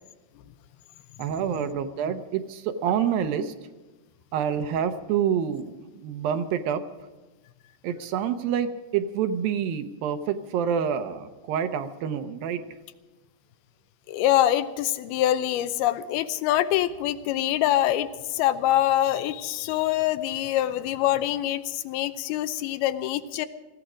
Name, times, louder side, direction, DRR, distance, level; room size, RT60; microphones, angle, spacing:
voice 1, 1.2-3.5 4.3-6.8 7.8-12.6, right 8 dB, 75° right, 9 dB, 2.5 m, -27 dB
voice 2, 14.1-23.5, left 13 dB, 85° left, 11 dB, 2.6 m, -25 dB
18.0 x 15.5 x 5.0 m, 1.2 s
omnidirectional pair, 4.5 m